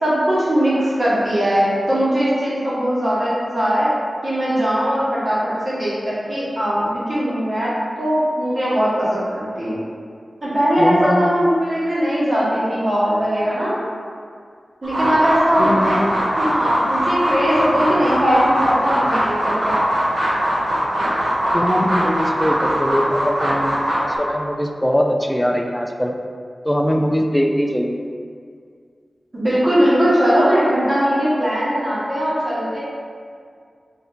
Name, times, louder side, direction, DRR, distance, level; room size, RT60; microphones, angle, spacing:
voice 1, 0.0-3.9 4.2-5.4 5.6-7.7 8.0-9.1 9.3-9.7 10.4-13.7 14.8-16.0 16.4-20.0 29.3-32.8, equal, 50° right, -11 dB, 1.3 m, -19 dB
voice 2, 10.8-11.3 15.6-16.2 21.5-26.2 26.6-28.0, equal, 10° left, 3 dB, 0.3 m, -21 dB
sound 1, 14.8-24.2, equal, 85° right, 0.6 m, -21 dB
2.8 x 2.6 x 3.5 m, 2.2 s
cardioid pair, 55°, 0 cm